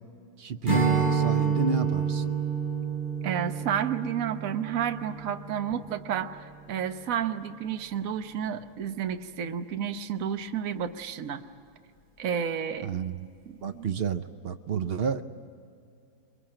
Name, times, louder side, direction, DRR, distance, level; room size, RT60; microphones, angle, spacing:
voice 1, 0.4-2.3 12.8-13.3 13.6-15.2, right 6 dB, 85° right, 8 dB, 0.5 m, -30 dB
Strum, 0.6-6.1, right 6 dB, 25° right, 6.2 m, -29 dB
voice 2, 3.2-11.4 12.2-12.9 13.7-13.9, right 8 dB, 50° right, 8 dB, 1.3 m, -31 dB
25.0 x 22.5 x 8.9 m, 2.5 s
omnidirectional pair, 2.0 m